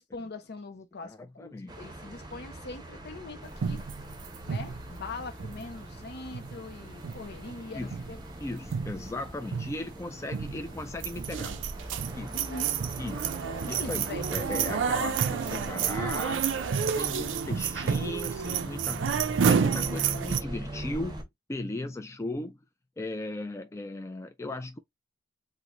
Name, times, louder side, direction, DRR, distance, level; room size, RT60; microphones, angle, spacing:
voice 1, 0.0-3.8 4.5-8.2 12.3-12.7 13.7-14.3 16.7-17.1, left 3 dB, 60° left, 0.6 m, -42 dB
voice 2, 1.0-1.7 7.7-8.0 8.4-11.6 12.1-12.4 13.0-13.4 13.7-19.1 19.4-22.6 23.0-24.8, left 2 dB, 15° left, 0.3 m, -37 dB
sound 1, 1.7-21.2, right 1 dB, 20° right, 0.7 m, -41 dB
sound 2, 3.6-6.0 6.3-6.8 7.0-7.6 7.9-8.2 8.6-9.2 9.5-9.9 10.3-10.7 11.0-20.4, right 7 dB, 70° right, 0.4 m, -30 dB
3.8 x 2.1 x 2.9 m
head